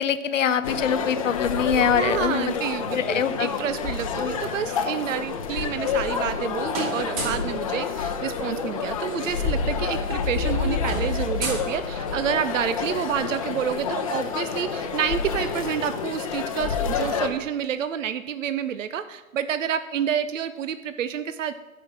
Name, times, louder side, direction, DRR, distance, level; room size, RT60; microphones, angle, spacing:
voice 1, 0.0-2.5 2.9-3.5 4.2-4.3, left 7 dB, 65° left, 12 dB, 0.8 m, -24 dB
sound 1, 0.6-17.3, left 5 dB, 25° left, 0.7 m, -28 dB
voice 2, 1.9-21.5, right 8 dB, 65° right, 12 dB, 0.6 m, -29 dB
sound 2, 5.7-6.4 6.7-7.5 8.9-9.0 9.2-9.4 9.7-12.4, right 2 dB, 25° right, 2.3 m, -34 dB
13.0 x 5.6 x 6.0 m, 1.2 s
hypercardioid pair, 145°, 42 cm